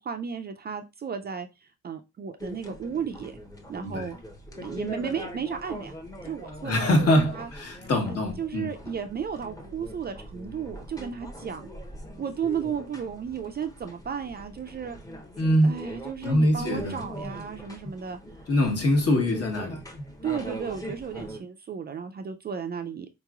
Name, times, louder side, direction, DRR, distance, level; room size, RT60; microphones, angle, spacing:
voice 1, 0.0-3.4 3.7-4.2 4.6-5.9 6.2-7.5 8.1-11.7 12.2-15.0 15.6-18.2 20.2-23.1, right 7 dB, 35° right, 0.4 m, -34 dB
sound 1, 2.4-21.4, equal, 10° left, 0.7 m, -42 dB
voice 2, 6.6-8.7 15.4-15.7 16.2-17.0 18.5-19.8, left 1 dB, 50° left, 1.2 m, -23 dB
3.8 x 2.9 x 2.3 m
cardioid pair, 90°, 30 cm